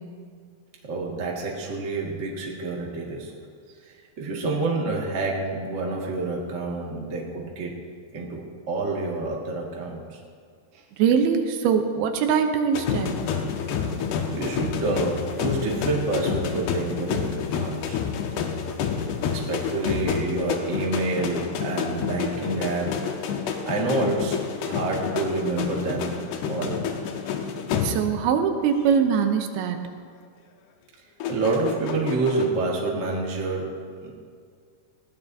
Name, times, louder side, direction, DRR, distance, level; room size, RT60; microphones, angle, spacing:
voice 1, 0.8-3.3 3.8-7.7 8.1-10.2 10.7-10.8 14.3-18.0 19.3-23.0 23.6-26.2 26.5-26.9 31.3-34.1, right 3 dB, 35° right, -2 dB, 1.1 m, -28 dB
voice 2, 11.0-13.1 27.8-29.8, right 7 dB, 80° right, 6 dB, 2.7 m, -22 dB
sound 1, 12.7-28.3 28.6-29.0 31.2-32.5, left 6 dB, 90° left, 3.0 m, -29 dB
20.5 x 16.5 x 2.7 m, 2.1 s
omnidirectional pair, 4.6 m